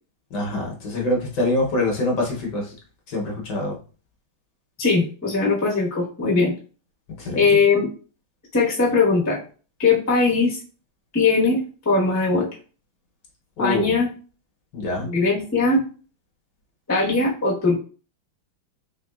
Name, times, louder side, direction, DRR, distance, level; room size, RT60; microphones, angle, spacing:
voice 1, 0.3-2.7 3.1-3.8 7.2-7.4 13.6-13.9 14.7-15.1, left 1 dB, 65° left, -1 dB, 1.3 m, -25 dB
voice 2, 4.8-6.5 7.3-7.9 8.5-9.4 9.8-10.6 11.1-12.5 13.6-14.1 15.0-15.8 16.9-17.8, left 4 dB, 15° left, -5 dB, 0.5 m, -20 dB
3.7 x 3.3 x 2.3 m, 0.38 s
omnidirectional pair, 2.3 m